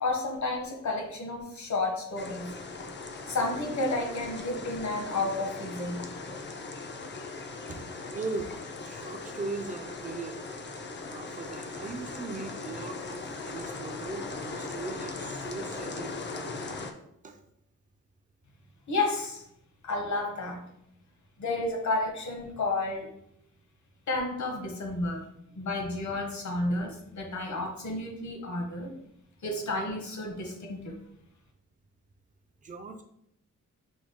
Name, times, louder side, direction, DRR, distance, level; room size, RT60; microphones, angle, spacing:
voice 1, 0.0-2.5 3.3-6.1 18.9-19.4 19.8-20.6 21.4-23.1 24.1-25.2 25.5-28.9 29.4-30.9, left 2 dB, 60° left, 2 dB, 1.2 m, -31 dB
sound 1, 2.2-16.9, left 3 dB, 35° left, 0.5 m, -39 dB
voice 2, 8.1-8.5 8.8-10.5 11.1-16.5 17.2-17.4 32.6-33.0, right 3 dB, 25° right, 5 dB, 0.5 m, -39 dB
6.1 x 2.3 x 3.6 m, 0.76 s
wide cardioid pair, 135°, 31 cm